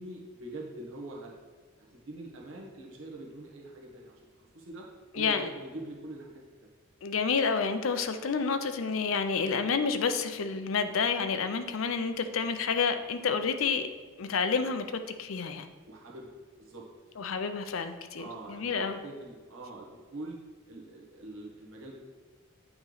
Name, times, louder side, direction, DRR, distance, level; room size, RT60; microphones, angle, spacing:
voice 1, 0.0-1.3 1.9-4.9 5.1-6.7 15.9-16.9 18.2-20.4 20.7-22.0, right 2 dB, 65° right, -2 dB, 1.3 m, -44 dB
voice 2, 5.1-5.5 7.0-13.9 14.2-15.7 17.2-19.0, left 5 dB, 70° left, 9 dB, 0.5 m, -29 dB
8.8 x 3.1 x 3.9 m, 1.5 s
head